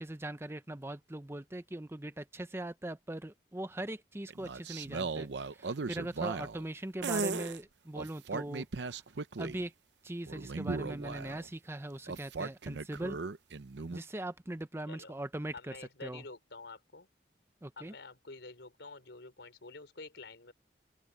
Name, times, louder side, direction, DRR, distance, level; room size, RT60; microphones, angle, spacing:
voice 1, 0.0-9.0 9.4-9.7 10.0-13.2 13.9-16.2 17.6-17.9, right 1 dB, 15° right, 0.7 m, -41 dB
sound 1, 4.3-6.6 7.0-7.6 7.9-9.6 10.3-11.5 12.1-14.0, right 4 dB, 80° right, 0.7 m, -37 dB
voice 2, 15.5-17.1 17.8-20.5, left 3 dB, 85° left, 3.9 m, -48 dB
open air
head